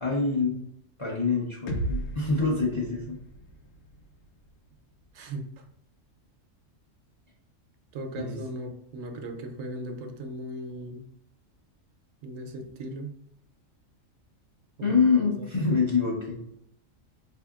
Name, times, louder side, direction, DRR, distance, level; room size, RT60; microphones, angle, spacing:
voice 1, 0.0-0.6 1.0-3.1 8.2-8.4 14.8-16.4, left 4 dB, 35° left, -2 dB, 0.5 m, -25 dB
sound 1, 1.7-5.6, right 1 dB, 75° left, 1.0 m, -37 dB
voice 2, 5.1-5.6 7.9-11.1 12.2-13.2 14.8-15.0 15.4-15.8, right 1 dB, 80° right, 5 dB, 1.0 m, -38 dB
4.7 x 2.7 x 2.3 m, 0.72 s
omnidirectional pair, 1.4 m